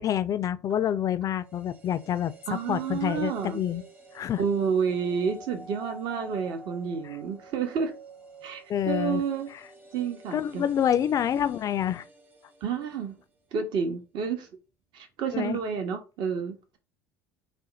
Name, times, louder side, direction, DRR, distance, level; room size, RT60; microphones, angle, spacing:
voice 1, 0.0-2.3 2.7-3.8 4.1-4.4 8.7-9.2 10.3-12.0 15.3-15.6, left 9 dB, 40° left, 0.4 m, -27 dB
sound 1, 1.3-13.4 13.7-13.8, right 2 dB, 20° right, 0.7 m, -49 dB
voice 2, 2.5-3.6 4.4-7.9 8.4-9.5 9.9-10.6 12.6-13.2 13.5-14.5 14.9-16.8, right 6 dB, 55° right, 0.8 m, -30 dB
4.2 x 2.1 x 3.9 m
hypercardioid pair, 65°, 9 cm